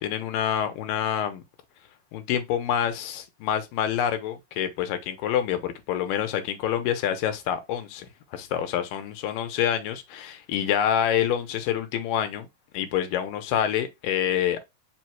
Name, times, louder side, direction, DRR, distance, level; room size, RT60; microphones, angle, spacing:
voice 1, 0.0-1.4 2.1-12.5 12.7-14.6, left 9 dB, 85° left, 2.4 m, -27 dB
5.4 x 2.1 x 4.4 m
omnidirectional pair, 3.9 m